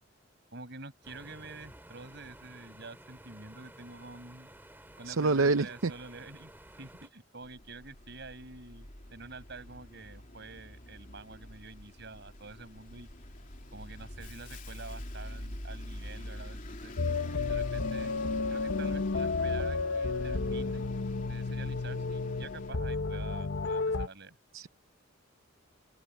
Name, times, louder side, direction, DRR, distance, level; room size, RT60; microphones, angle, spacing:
voice 1, 0.5-4.5 5.0-6.5 6.8-13.1 13.7-16.9 17.5-18.1 18.5-20.9 21.3-24.4, right 3 dB, 55° right, 6.6 m, -48 dB
sound 1, 1.0-7.1, right 1 dB, 10° right, 3.6 m, -53 dB
voice 2, 5.1-5.9 24.5-24.7, right 3 dB, 80° right, 0.7 m, -26 dB
Bus, 7.4-22.7, left 1 dB, 40° left, 3.2 m, -46 dB
sound 2, 17.0-24.1, left 3 dB, 65° left, 1.1 m, -32 dB
open air
head